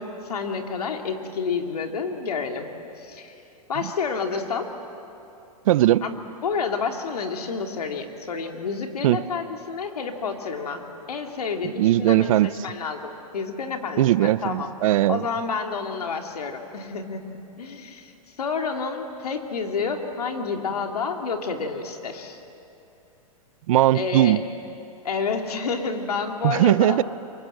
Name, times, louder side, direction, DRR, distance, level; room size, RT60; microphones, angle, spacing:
voice 1, 0.0-2.7 3.0-3.3 3.7-4.7 6.0-14.7 15.1-17.2 17.6-22.4 23.9-24.4 25.0-27.0, left 5 dB, 90° left, 2.7 m, -29 dB
voice 2, 5.7-6.1 9.0-9.2 11.6-12.5 14.0-15.3 23.7-24.4 26.4-27.0, right 14 dB, 65° right, 0.6 m, -19 dB
28.0 x 23.5 x 7.8 m
hypercardioid pair, 130°, 19 cm